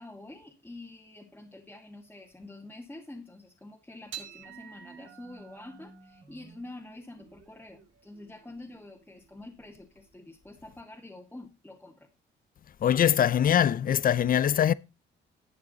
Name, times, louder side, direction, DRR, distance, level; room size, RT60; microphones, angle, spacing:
voice 1, 0.0-12.1, left 2 dB, 10° left, 1.7 m, -47 dB
sound 1, 4.1-10.7, right 8 dB, 75° right, 2.1 m, -50 dB
voice 2, 12.8-14.7, left 9 dB, 45° left, 0.5 m, -22 dB
11.0 x 7.5 x 4.1 m
cardioid pair, 90°, 20 cm